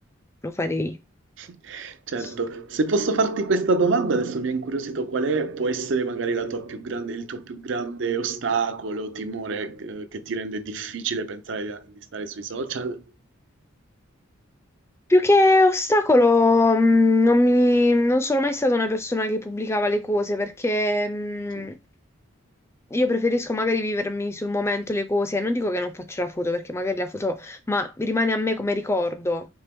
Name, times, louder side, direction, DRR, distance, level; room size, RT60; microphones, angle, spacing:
voice 1, 0.4-1.0 2.2-2.3 15.1-21.8 22.9-29.5, left 2 dB, 15° left, 0.4 m, -22 dB
voice 2, 1.4-11.9 12.1-13.0, right 3 dB, 60° right, 0.5 m, -27 dB
4.4 x 2.9 x 3.4 m
head